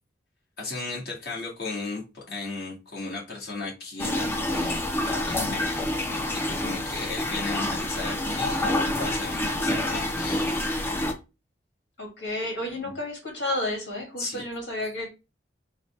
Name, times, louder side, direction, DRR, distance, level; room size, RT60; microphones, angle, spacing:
voice 1, 0.6-10.7 14.2-14.4, left 3 dB, 55° left, 1.6 m, -36 dB
sound 1, 4.0-11.1, left 1 dB, 10° left, 0.4 m, -27 dB
voice 2, 12.0-15.1, left 1 dB, 75° left, 1.7 m, -31 dB
4.0 x 2.2 x 4.1 m
head